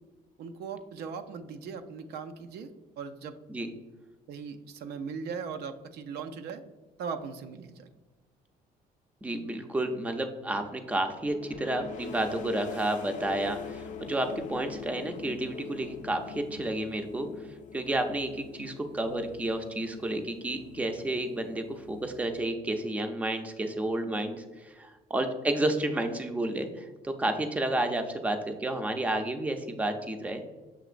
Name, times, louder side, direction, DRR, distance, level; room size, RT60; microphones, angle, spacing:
voice 1, 0.4-3.4 4.3-6.6 7.0-7.9, right 6 dB, 70° right, 9 dB, 0.4 m, -39 dB
voice 2, 9.2-17.3 17.7-30.4, right 1 dB, 10° right, 6 dB, 0.4 m, -31 dB
sound 1, 11.3-22.8, left 6 dB, 50° left, 0.4 m, -44 dB
6.9 x 2.9 x 2.4 m, 1.2 s
cardioid pair, 110°, 17 cm